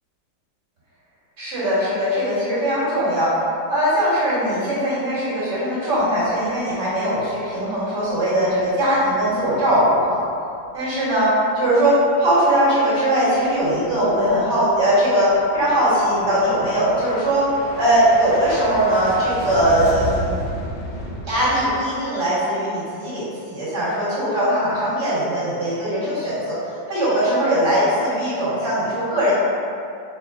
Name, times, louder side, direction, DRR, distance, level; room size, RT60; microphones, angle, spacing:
voice 1, 1.4-3.4 3.7-10.2 10.7-17.5 17.7-20.4 21.3-29.3, right 1 dB, 60° right, -11 dB, 2.3 m, -20 dB
sound 1, 5.9-6.8 7.2-7.5 8.0-10.4 10.6-11.1 13.2-21.7, equal, 85° left, 1.4 m, -34 dB
4.5 x 2.2 x 4.7 m, 2.6 s
omnidirectional pair, 2.0 m